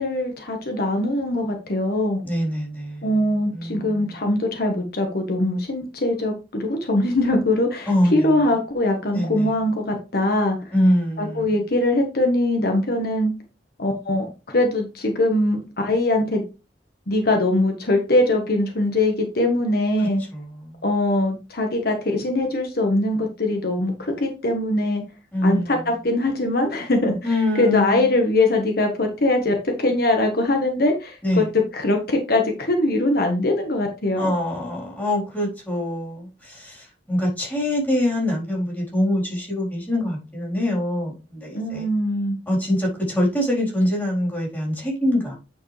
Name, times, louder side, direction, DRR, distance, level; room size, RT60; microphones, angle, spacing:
voice 1, 0.0-2.2 3.0-10.7 11.2-13.3 13.8-16.4 17.1-20.2 20.8-25.0 25.4-27.2 27.5-34.3 41.5-42.4, left 1 dB, 60° left, 1.3 m, -22 dB
voice 2, 2.2-3.1 3.5-4.2 7.9-8.3 9.1-9.6 10.7-11.5 20.3-20.8 25.3-25.8 27.2-28.1 31.2-31.5 34.2-41.9 42.5-45.4, left 1 dB, 10° left, 4.0 m, -24 dB
9.3 x 4.8 x 3.3 m
head